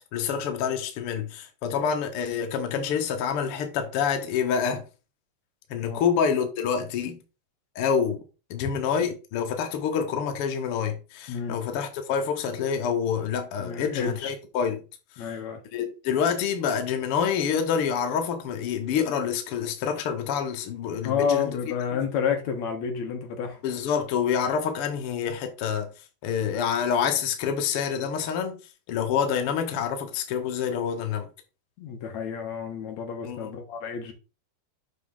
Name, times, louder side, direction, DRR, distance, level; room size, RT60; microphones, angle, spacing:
voice 1, 0.1-4.8 5.7-7.2 7.7-8.2 8.5-14.8 15.1-15.4 15.7-21.5 21.8-22.0 23.6-25.9 26.2-28.6 28.9-31.3 33.2-33.5, left 7 dB, 85° left, 1.2 m, -27 dB
voice 2, 13.6-14.3 15.2-15.6 21.0-23.6 31.8-34.1, left 7 dB, 60° left, 2.2 m, -30 dB
6.9 x 5.3 x 3.8 m
omnidirectional pair, 4.2 m